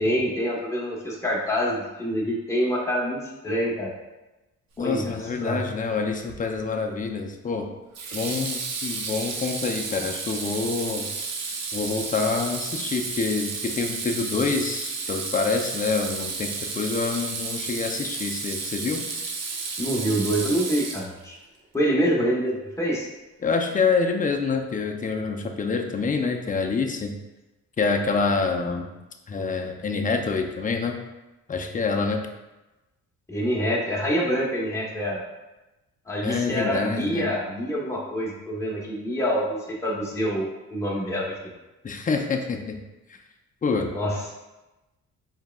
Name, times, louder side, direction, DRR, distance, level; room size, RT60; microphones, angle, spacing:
voice 1, 0.0-3.9 4.8-5.2 5.4-5.6 19.8-21.4 21.7-23.1 33.3-35.2 36.1-41.3 43.9-44.1, equal, 10° left, -4 dB, 1.1 m, -26 dB
voice 2, 4.8-7.7 8.1-11.1 11.7-19.0 23.4-27.1 27.8-28.9 29.3-31.0 31.5-32.3 36.2-37.3 41.8-42.8 43.1-43.2 43.6-43.9, left 4 dB, 25° left, 3 dB, 0.5 m, -26 dB
Water tap faucet / Sink (filling or washing), 6.3-6.6 7.9-21.4, right 4 dB, 60° right, 0.7 m, -32 dB
4.5 x 3.4 x 2.3 m, 1.0 s
cardioid pair, 90°, 30 cm